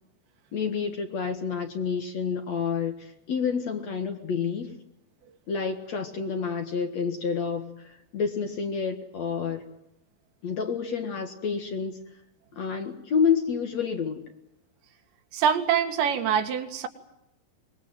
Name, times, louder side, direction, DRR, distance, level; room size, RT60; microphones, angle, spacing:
voice 1, 0.5-4.7 5.5-9.6 10.4-12.0 12.6-14.3, left 6 dB, 50° left, 6 dB, 2.4 m, -29 dB
voice 2, 15.3-16.9, right 8 dB, 90° right, 6 dB, 4.2 m, -24 dB
24.5 x 21.0 x 9.0 m, 0.86 s
omnidirectional pair, 4.9 m